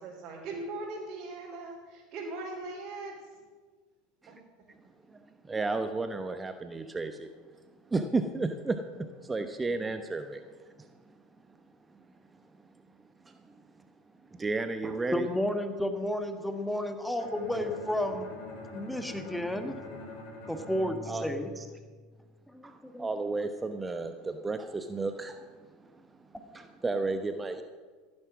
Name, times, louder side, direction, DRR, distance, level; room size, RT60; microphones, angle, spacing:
voice 1, 0.0-3.2 4.3-4.4, right 2 dB, 45° right, -5 dB, 3.4 m, -39 dB
voice 2, 5.4-7.3 7.9-11.1 13.2-13.5 14.3-15.3 21.1-21.3 21.6-21.7 22.6-25.9 26.5-27.6, right 3 dB, 15° right, 8 dB, 0.9 m, -33 dB
voice 3, 15.1-18.3 18.7-19.8 20.5-21.5 22.5-23.1 26.3-26.4, left 1 dB, 5° left, 7 dB, 1.5 m, -32 dB
Bowed string instrument, 17.2-22.1, left 2 dB, 55° left, 4.4 m, -44 dB
15.5 x 9.7 x 6.1 m, 1.4 s
hypercardioid pair, 85°, 0 cm